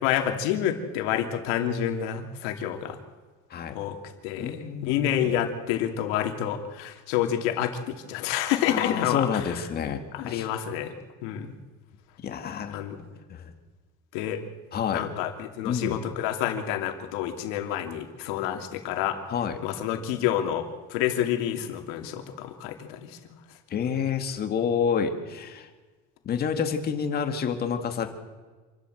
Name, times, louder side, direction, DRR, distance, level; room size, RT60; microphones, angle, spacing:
voice 1, 0.0-3.0 3.7-3.9 4.2-4.6 4.9-9.4 10.1-10.9 11.2-11.5 12.7-13.0 14.1-14.4 14.9-19.2 19.6-23.0, left 10 dB, 85° left, 4 dB, 2.8 m, -28 dB
voice 2, 4.4-5.4 8.7-10.5 12.2-12.8 13.3-13.5 14.7-15.0 15.6-16.0 19.3-19.6 23.7-25.7 26.3-28.1, left 7 dB, 30° left, 6 dB, 2.0 m, -29 dB
27.0 x 13.0 x 7.9 m, 1.4 s
cardioid pair, 160°, 30 cm